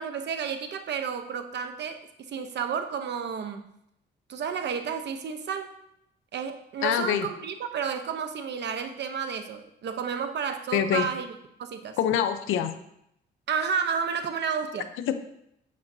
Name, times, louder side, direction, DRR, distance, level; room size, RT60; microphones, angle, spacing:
voice 1, 0.0-3.7 4.3-5.7 6.3-12.0 13.5-14.9, right 6 dB, 60° right, 8 dB, 0.9 m, -31 dB
voice 2, 6.8-7.3 10.7-11.0 12.0-12.7 15.1-15.2, left 9 dB, 90° left, 9 dB, 0.7 m, -24 dB
8.4 x 8.1 x 2.7 m, 0.78 s
cardioid pair, 90°, 20 cm